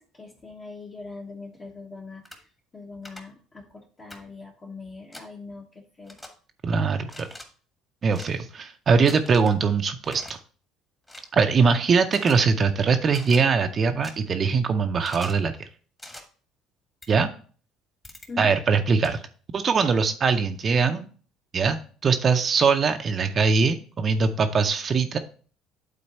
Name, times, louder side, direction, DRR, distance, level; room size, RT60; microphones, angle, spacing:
voice 1, 0.0-2.3 2.7-6.2 8.1-8.4 18.3-18.5, left 4 dB, 30° left, -1 dB, 1.2 m, -41 dB
sound 1, 2.2-2.4 3.0-3.2 4.1-4.2 5.1-5.3 6.1-6.3 7.0-7.4 8.1-8.3 9.1-9.6 10.0-10.3 11.1-11.3 12.1-12.4 13.1-13.4 14.0-14.1 15.0-15.4 16.0-16.2 17.0-17.1 18.0-18.3 19.0-19.1, left 1 dB, 15° left, 1.4 m, -43 dB
voice 2, 6.6-7.3 8.0-10.4 11.3-15.7 17.1-17.3 18.4-19.2 19.5-21.1 21.5-21.8 22.0-25.2, right 5 dB, 40° right, 6 dB, 0.6 m, -22 dB
8.6 x 3.9 x 4.3 m, 0.42 s
supercardioid pair, 80°, 0 cm